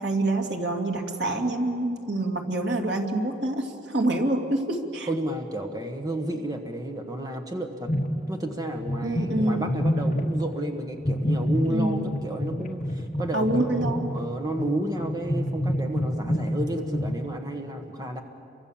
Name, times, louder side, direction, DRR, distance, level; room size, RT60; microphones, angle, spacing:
voice 1, 0.0-5.1 9.0-9.7 11.7-12.2 13.3-14.1, right 1 dB, 85° right, 2 dB, 2.7 m, -26 dB
voice 2, 5.1-7.9 8.3-18.2, right 1 dB, 20° right, 4 dB, 1.5 m, -31 dB
sound 1, 7.9-8.5 8.8-10.5 11.0-17.1, equal, 45° left, 1.5 m, -28 dB
29.5 x 24.5 x 7.4 m, 2.6 s
head